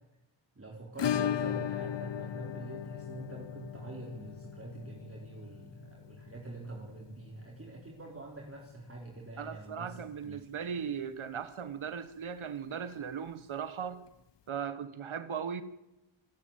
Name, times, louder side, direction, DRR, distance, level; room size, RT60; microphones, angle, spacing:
voice 1, 0.6-10.0 10.2-10.4, right 2 dB, 25° right, 0 dB, 4.1 m, -46 dB
Acoustic guitar / Strum, 1.0-9.6 9.8-9.9 10.2-10.3 10.7-10.8 12.8-12.9 14.1-14.2, left 9 dB, 60° left, 0.8 m, -38 dB
voice 2, 9.4-14.0 14.5-15.6, right 7 dB, 75° right, 12 dB, 1.4 m, -38 dB
27.0 x 13.0 x 8.9 m, 0.93 s
wide cardioid pair, 85°, 49 cm